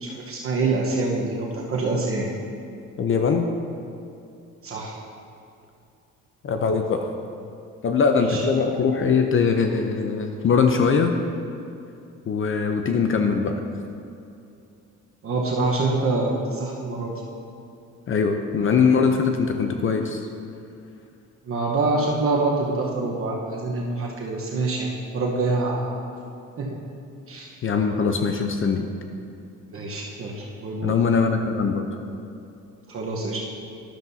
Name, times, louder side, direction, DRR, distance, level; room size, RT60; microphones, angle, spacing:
voice 1, 0.0-2.3 4.6-4.9 8.3-8.4 15.2-17.1 21.5-25.9 26.6-26.8 27.3-27.5 29.7-30.9 32.9-33.4, right 3 dB, 45° right, -2 dB, 1.1 m, -25 dB
voice 2, 3.0-3.5 6.4-7.1 7.8-11.1 12.3-13.6 18.1-20.3 27.6-28.9 30.8-31.9, left 5 dB, 40° left, 5 dB, 0.6 m, -21 dB
12.0 x 7.2 x 2.7 m, 2.6 s
cardioid pair, 95°, 31 cm